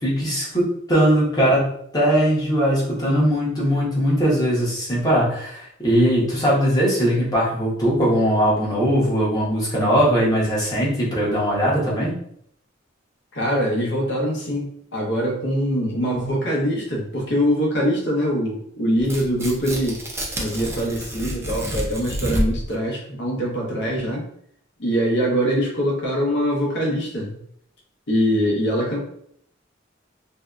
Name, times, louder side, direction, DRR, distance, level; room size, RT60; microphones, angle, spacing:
voice 1, 0.0-12.1, equal, 20° left, -6 dB, 0.8 m, -20 dB
voice 2, 13.3-20.0 20.4-24.3 24.8-27.3 28.1-29.0, equal, 60° left, -2 dB, 0.8 m, -23 dB
Tearing, 19.0-22.7, equal, 15° right, 0.4 m, -28 dB
2.7 x 2.2 x 2.3 m, 0.68 s
head